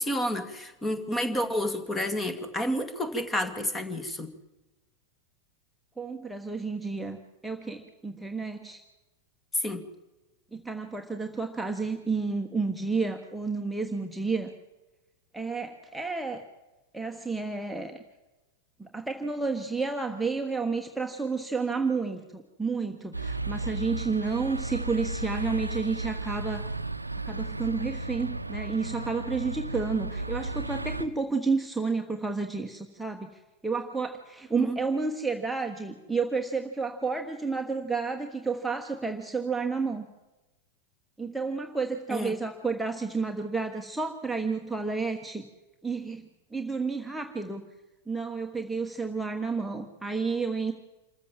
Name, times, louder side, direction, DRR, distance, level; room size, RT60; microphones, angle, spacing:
voice 1, 0.0-4.3 9.6-9.8 34.6-34.8 42.1-42.3, left 1 dB, 15° left, 10 dB, 2.1 m, -30 dB
voice 2, 6.0-7.2 7.4-8.8 10.5-14.5 15.3-16.4 16.9-18.0 18.8-26.8 27.2-40.1 41.2-45.4 45.8-47.6 48.1-50.7, right 4 dB, 5° right, 2 dB, 1.4 m, -31 dB
sound 1, 23.1-31.1, right 2 dB, 85° right, 0.7 m, -34 dB
27.0 x 14.5 x 7.5 m, 1.1 s
figure-of-eight pair, 90°, 0 cm